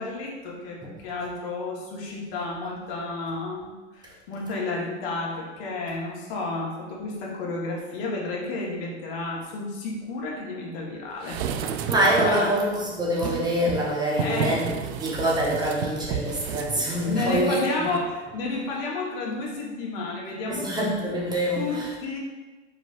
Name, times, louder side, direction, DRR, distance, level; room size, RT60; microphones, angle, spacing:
voice 1, 0.0-11.9 12.2-12.6 14.2-14.6 17.0-21.0 21.5-22.2, left 2 dB, 50° left, -2 dB, 1.3 m, -31 dB
sound 1, 11.2-12.5 13.1-17.7 18.0-18.1, right 7 dB, 60° right, 0.5 m, -32 dB
voice 2, 11.8-14.7 15.0-17.9 20.5-21.9, right 1 dB, 10° right, -4 dB, 1.0 m, -25 dB
4.6 x 4.3 x 2.5 m, 1.2 s
hypercardioid pair, 105°, 36 cm